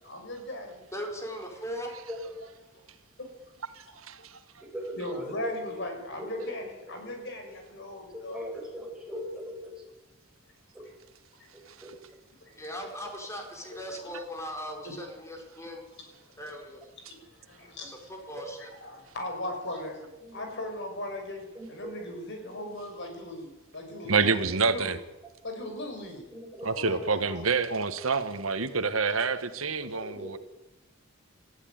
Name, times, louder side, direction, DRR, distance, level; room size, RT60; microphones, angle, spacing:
voice 1, 0.0-0.8 2.7-2.8 3.2-3.3 4.9-8.5 11.4-11.5 12.4-12.9 13.7-13.8 14.8-15.0 17.2-18.1 18.6-20.0 20.3-23.5 23.7-24.2 24.7-24.9 25.4-26.2 26.6-27.4 30.1-30.2, left 1 dB, 60° left, 4 dB, 6.0 m, -38 dB
voice 2, 0.9-1.9 12.6-15.9 16.4-16.8 17.8-18.7, equal, 15° left, 2 dB, 4.7 m, -39 dB
voice 3, 3.8-4.3 24.1-25.0 26.6-30.4, right 4 dB, 85° right, 11 dB, 1.6 m, -27 dB
voice 4, 4.7-5.5 6.4-6.5 8.1-9.7 10.7-10.8 11.8-11.9 18.4-18.5 20.2-20.4 21.5-22.0 22.4-22.7 26.3-26.7 29.9-30.4, equal, 5° right, -1 dB, 6.4 m, -39 dB
19.5 x 14.5 x 9.5 m, 1.0 s
head